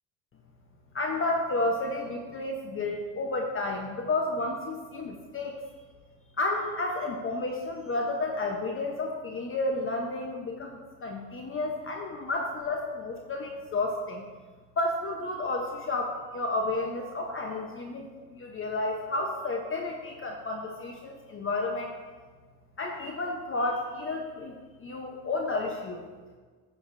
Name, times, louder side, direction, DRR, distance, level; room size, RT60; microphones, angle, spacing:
voice 1, 0.9-5.5 6.4-14.2 14.8-21.9 22.8-26.0, left 2 dB, 35° left, 2 dB, 0.9 m, -31 dB
9.4 x 8.4 x 2.6 m, 1.5 s
supercardioid pair, 80°, 39 cm